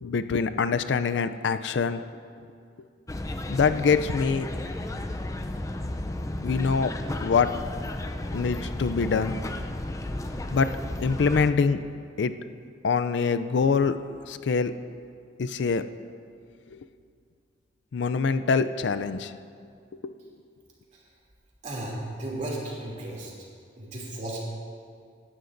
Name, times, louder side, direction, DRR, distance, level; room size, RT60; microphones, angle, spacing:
voice 1, 0.0-2.0 3.5-4.5 6.4-6.9 7.2-7.5 8.3-9.3 10.5-10.7 11.0-11.8 12.2-12.3 12.8-14.7 15.4-15.8 16.7-16.8 17.9-19.3 20.0-20.2, left 5 dB, 75° left, 11 dB, 0.4 m, -24 dB
sound 1, 3.1-11.5, left 1 dB, 15° left, 0.4 m, -33 dB
voice 2, 21.6-23.3 23.8-24.4, right 1 dB, 40° right, -4 dB, 2.8 m, -34 dB
17.0 x 12.5 x 2.6 m, 2.3 s
head